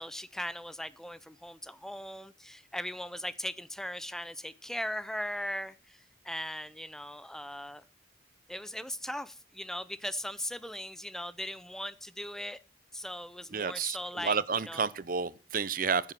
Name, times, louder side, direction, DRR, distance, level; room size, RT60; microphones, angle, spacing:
voice 1, 0.0-7.8 8.5-12.6 12.9-14.9, left 1 dB, 5° left, 0.6 m, -39 dB
voice 2, 13.5-16.1, right 5 dB, 50° right, 0.8 m, -31 dB
15.0 x 7.5 x 7.6 m
head